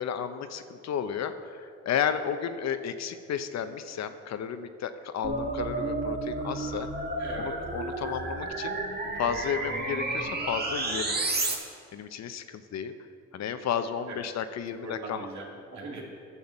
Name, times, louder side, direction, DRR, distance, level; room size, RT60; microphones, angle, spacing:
voice 1, 0.0-6.9 7.4-8.8 9.1-11.2 11.9-12.9 13.3-15.3, left 8 dB, 60° left, 10 dB, 0.8 m, -33 dB
sound 1, 5.2-11.5, right 2 dB, 30° right, 1.7 m, -31 dB
voice 2, 7.2-7.5 14.1-14.2 14.7-16.0, right 2 dB, 70° right, -1 dB, 2.6 m, -40 dB
10.5 x 7.2 x 7.1 m, 2.2 s
cardioid pair, 90°, 30 cm